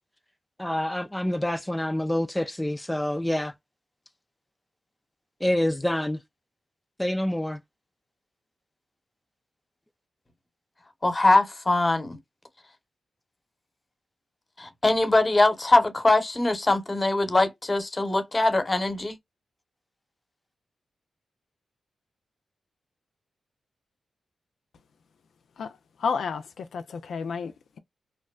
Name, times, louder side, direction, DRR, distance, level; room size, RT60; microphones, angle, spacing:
voice 1, 0.6-3.5 5.4-6.2 7.0-7.6, left 1 dB, 10° left, 0.4 m, -27 dB
voice 2, 11.0-12.2 14.6-19.2, left 2 dB, 30° left, 1.0 m, -22 dB
voice 3, 25.6-27.8, left 5 dB, 75° left, 0.4 m, -32 dB
2.5 x 2.1 x 2.3 m
cardioid pair, 55°, 0 cm